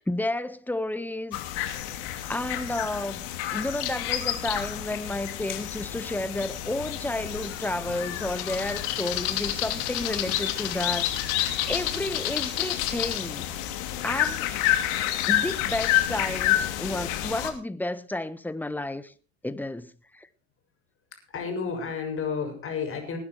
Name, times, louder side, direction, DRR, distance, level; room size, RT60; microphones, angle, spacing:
voice 1, 0.0-1.8 2.3-13.5 14.0-14.5 15.3-19.1 19.4-20.3, left 1 dB, 5° left, 1.1 m, -32 dB
sound 1, 1.3-17.5, left 12 dB, 65° left, 2.8 m, -29 dB
voice 2, 21.3-23.2, left 5 dB, 40° left, 6.7 m, -31 dB
20.0 x 9.8 x 4.5 m
hypercardioid pair, 80°, 34 cm